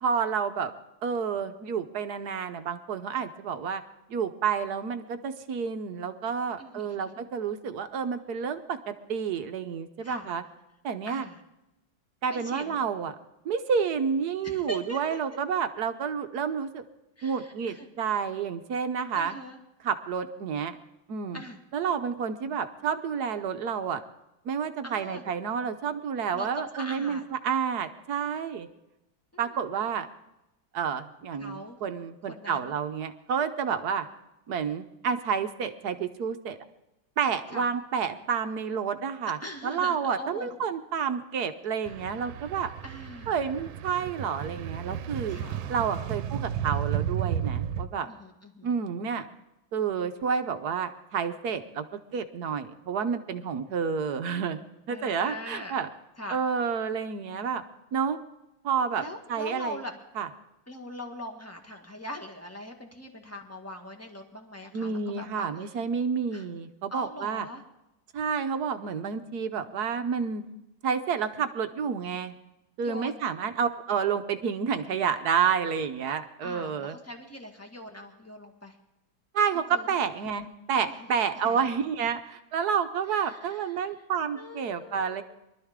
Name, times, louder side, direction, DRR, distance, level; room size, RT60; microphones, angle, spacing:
voice 1, 0.0-0.7 1.0-3.8 4.1-10.4 10.8-11.2 12.2-13.2 13.4-16.8 17.2-19.4 19.8-20.7 21.1-21.4 21.7-24.0 24.4-28.7 29.4-30.1 30.7-34.1 34.5-36.6 37.2-39.4 39.6-42.7 43.3-45.4 45.7-48.1 48.6-49.3 49.7-55.9 56.3-57.6 57.9-58.2 58.6-59.0 59.3-59.8 60.2-60.3 64.7-67.5 68.1-70.4 70.8-72.4 72.8-77.0 79.3-85.2, right 6 dB, 60° right, 9 dB, 1.2 m, -29 dB
voice 2, 6.6-7.1 10.0-10.3 11.1-11.4 12.3-12.8 14.4-15.2 17.2-17.9 19.1-19.6 21.3-21.6 24.8-25.2 26.3-27.2 29.3-29.6 31.4-31.8 32.3-32.7 37.5-37.7 39.4-40.5 42.8-43.3 45.3-45.6 46.1-46.3 48.1-48.7 54.9-55.8 56.2-56.4 59.0-59.9 60.7-65.7 66.3-66.5 66.9-67.6 72.8-73.2 76.4-78.8 79.7-79.9 80.8-81.1 81.4-81.6 83.1-83.9 84.3-85.2, left 1 dB, 10° left, 3 dB, 1.6 m, -41 dB
sound 1, 41.9-47.9, right 9 dB, 90° right, 1.5 m, -33 dB
23.5 x 12.5 x 3.7 m, 0.93 s
omnidirectional pair, 2.1 m